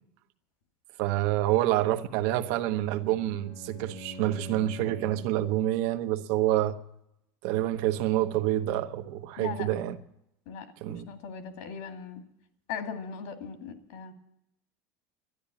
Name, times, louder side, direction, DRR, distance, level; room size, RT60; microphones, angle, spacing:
voice 1, 1.0-6.8 7.4-10.0 10.8-11.1, right 14 dB, 60° right, 1.0 m, -27 dB
Bowed string instrument, 2.3-5.4, left 1 dB, 85° left, 3.9 m, -45 dB
voice 2, 9.4-9.7 10.5-12.2 12.7-14.1, left 6 dB, 65° left, 2.1 m, -39 dB
12.5 x 10.0 x 8.6 m
cardioid pair, 170°, 8 cm